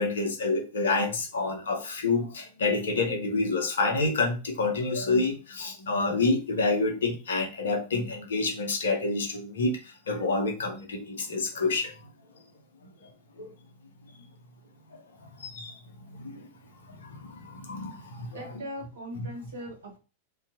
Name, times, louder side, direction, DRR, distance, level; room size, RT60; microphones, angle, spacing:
voice 1, 0.0-11.9 13.0-13.1 13.4-13.5 14.9-15.8 16.1-16.5 16.8-18.6 19.2-19.3, left 3 dB, 65° left, 0.7 m, -28 dB
voice 2, 18.3-20.0, equal, 65° right, 1.0 m, -40 dB
2.6 x 2.3 x 2.4 m
figure-of-eight pair, 90°, 0 cm